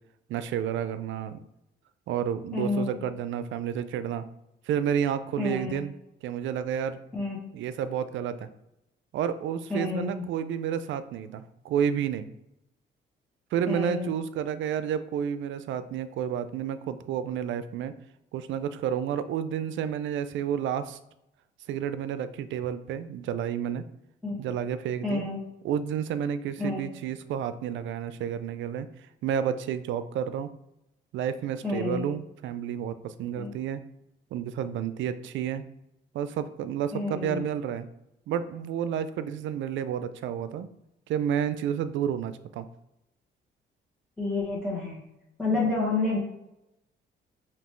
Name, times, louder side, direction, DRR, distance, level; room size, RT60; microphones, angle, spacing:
voice 1, 0.3-1.4 2.1-4.2 4.7-5.9 6.2-7.0 7.5-8.5 9.1-12.3 13.5-17.9 18.3-21.0 21.7-23.8 24.4-25.3 25.6-28.9 29.2-30.5 31.1-33.8 34.3-35.6 36.1-37.9 38.3-40.7 41.1-42.7 45.5-45.7, right 9 dB, 75° right, 13 dB, 0.4 m, -30 dB
voice 2, 2.5-3.0 5.4-5.8 7.1-7.4 9.7-10.2 13.7-14.1 24.2-24.4 25.0-25.4 26.6-26.8 31.6-32.1 33.3-33.5 36.9-37.5 44.2-45.0 45.4-46.2, left 3 dB, 5° left, -8 dB, 1.6 m, -29 dB
5.2 x 2.8 x 3.1 m, 0.88 s
cardioid pair, 90°, 20 cm